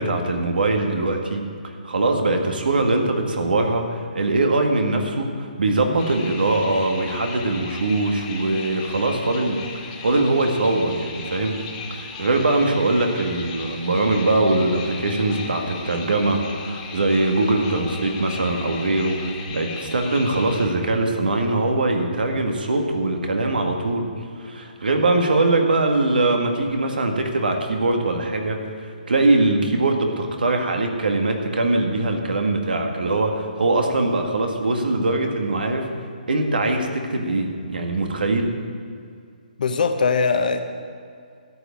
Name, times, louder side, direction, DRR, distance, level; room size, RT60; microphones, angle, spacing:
voice 1, 0.0-9.6 10.0-11.6 11.9-24.1 24.4-35.9 36.3-38.5, right 2 dB, 80° right, 3 dB, 2.0 m, -22 dB
sound 1, 6.0-20.7, left 4 dB, 30° left, 1.9 m, -37 dB
voice 2, 39.6-40.6, left 5 dB, 65° left, 6 dB, 1.3 m, -20 dB
13.5 x 6.0 x 9.1 m, 2.3 s
hypercardioid pair, 155°, 5 cm